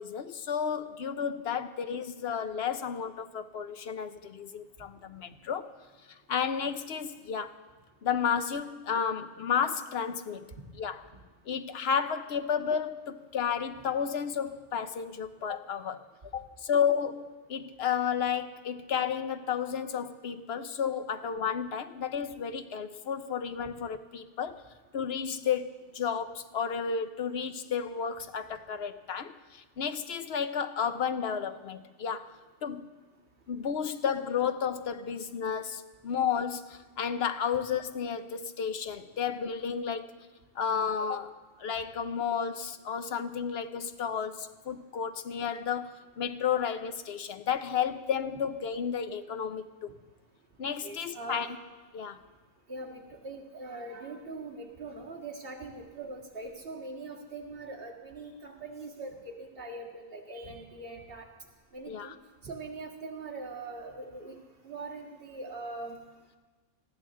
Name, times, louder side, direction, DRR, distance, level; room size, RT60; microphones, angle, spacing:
voice 1, 0.0-5.7 6.1-7.5 8.0-11.0 11.5-16.0 16.3-24.6 24.9-32.4 32.6-32.9 33.5-40.1 40.6-49.9 50.6-51.5 51.9-52.2 61.9-62.1, left 7 dB, 60° left, 10 dB, 0.9 m, -32 dB
voice 2, 50.8-51.6 52.7-61.3 61.7-62.1 62.4-64.4 64.6-66.0, right 3 dB, 45° right, -2 dB, 2.1 m, -42 dB
20.0 x 14.0 x 3.7 m, 1.3 s
omnidirectional pair, 1.4 m